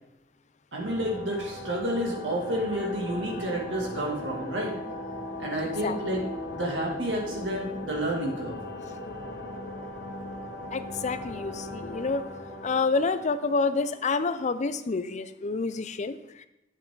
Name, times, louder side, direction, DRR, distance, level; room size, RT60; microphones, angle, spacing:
voice 1, 0.7-4.7 5.4-6.2 6.5-8.5, right 1 dB, 70° right, -1 dB, 2.6 m, -30 dB
sound 1, 0.8-14.4, left 1 dB, 60° left, 1.6 m, -38 dB
voice 2, 10.7-12.2 12.6-16.4, left 4 dB, 40° left, 12 dB, 0.5 m, -28 dB
9.2 x 8.2 x 3.9 m, 0.91 s
head